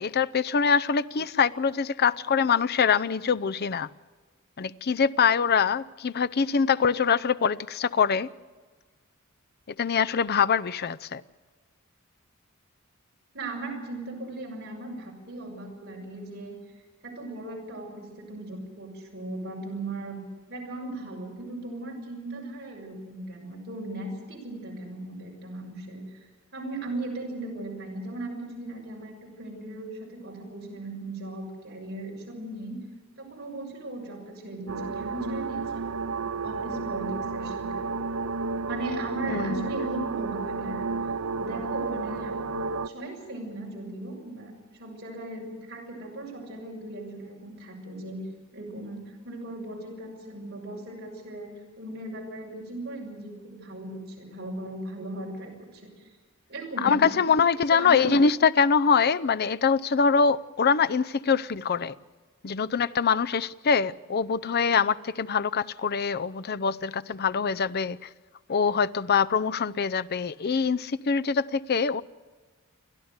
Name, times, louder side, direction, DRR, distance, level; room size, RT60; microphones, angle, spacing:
voice 1, 0.0-3.9 4.6-8.3 9.8-11.2 39.3-39.7 56.8-61.9 62.4-68.1 68.5-72.0, left 6 dB, 50° left, 0.6 m, -24 dB
voice 2, 13.3-16.5 17.0-20.2 20.5-26.2 26.5-32.8 33.2-35.9 36.4-37.8 38.7-40.9 41.4-42.4 42.8-44.5 44.8-48.2 48.5-56.1 56.5-57.2 57.7-58.1, right 2 dB, 50° right, 6.5 m, -37 dB
sound 1, 34.7-42.9, right 4 dB, 80° right, 0.7 m, -31 dB
29.5 x 11.5 x 8.1 m
head